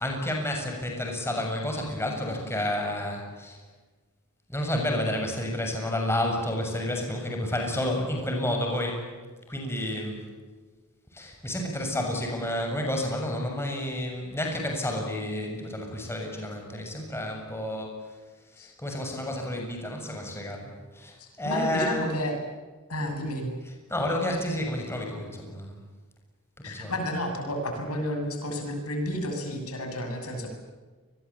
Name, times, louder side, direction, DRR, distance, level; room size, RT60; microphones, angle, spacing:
voice 1, 0.0-3.6 4.5-9.0 9.5-10.2 11.1-18.0 18.6-22.1 23.9-25.8 26.7-26.9, left 1 dB, 10° left, 1 dB, 7.1 m, -30 dB
voice 2, 21.2-22.3 22.9-23.5 26.6-30.5, equal, 70° left, 4 dB, 7.4 m, -31 dB
29.0 x 22.0 x 8.8 m, 1.4 s
head